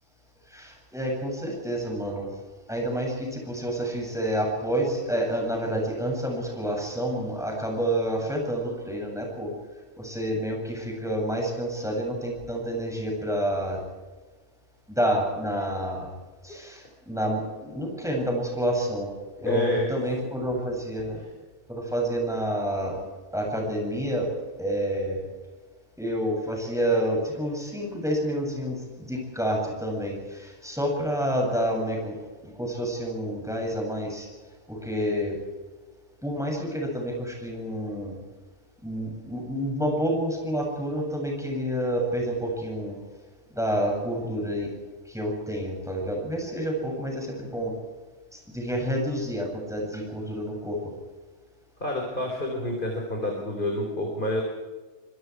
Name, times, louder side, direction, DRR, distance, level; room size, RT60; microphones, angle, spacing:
voice 1, 0.5-2.3 2.7-9.5 10.0-13.8 14.9-16.1 16.4-19.1 19.4-21.2 21.7-23.0 23.3-24.3 24.6-25.2 26.0-32.2 32.4-34.3 34.7-35.4 36.2-38.2 38.8-43.0 43.5-44.7 45.0-47.8 48.3-50.9, equal, ahead, 0 dB, 7.6 m, -29 dB
voice 2, 19.4-19.9 51.8-54.4, left 1 dB, 45° left, 0 dB, 4.4 m, -28 dB
26.0 x 24.0 x 4.8 m, 1.3 s
omnidirectional pair, 1.2 m